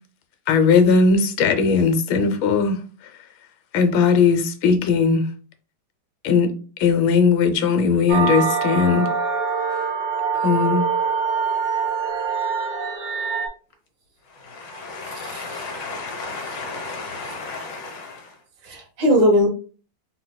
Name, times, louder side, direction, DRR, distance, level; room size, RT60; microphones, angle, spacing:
voice 1, 0.5-2.8 3.7-5.2 6.2-6.5 6.8-9.1 10.4-10.8, left 5 dB, 85° left, 1.4 m, -18 dB
sound 1, 8.1-13.5, right 5 dB, 55° right, 0.5 m, -24 dB
voice 2, 14.3-18.3, left 3 dB, 70° left, 1.7 m, -33 dB
voice 3, 15.2-15.6 18.7-19.5, equal, 70° right, 2.0 m, -19 dB
4.4 x 4.0 x 2.2 m
omnidirectional pair, 2.1 m